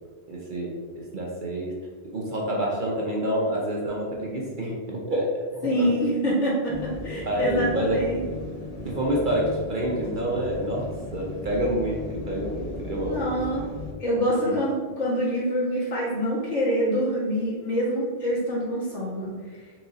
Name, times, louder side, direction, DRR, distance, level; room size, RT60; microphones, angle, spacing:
voice 1, 0.3-0.8 1.1-1.7 2.0-5.9 7.3-8.0 8.8-13.3 14.4-14.6, right 1 dB, 50° right, -2 dB, 0.7 m, -28 dB
voice 2, 5.6-8.2 13.0-13.7 14.0-19.6, equal, 70° left, -7 dB, 1.9 m, -26 dB
sound 1, 6.7-13.9, left 2 dB, 40° left, 0.6 m, -36 dB
4.7 x 2.6 x 3.9 m, 1.5 s
omnidirectional pair, 1.3 m